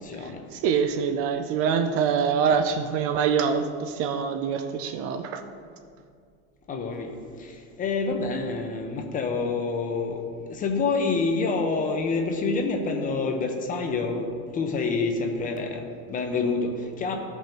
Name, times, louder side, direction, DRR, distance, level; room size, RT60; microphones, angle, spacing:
voice 1, 0.0-0.4 6.7-7.1 7.4-10.2 10.5-17.2, left 4 dB, 25° left, 4 dB, 0.7 m, -27 dB
voice 2, 0.6-5.4, right 6 dB, 45° right, 8 dB, 0.5 m, -25 dB
14.0 x 5.5 x 3.0 m, 2.3 s
cardioid pair, 155°, 33 cm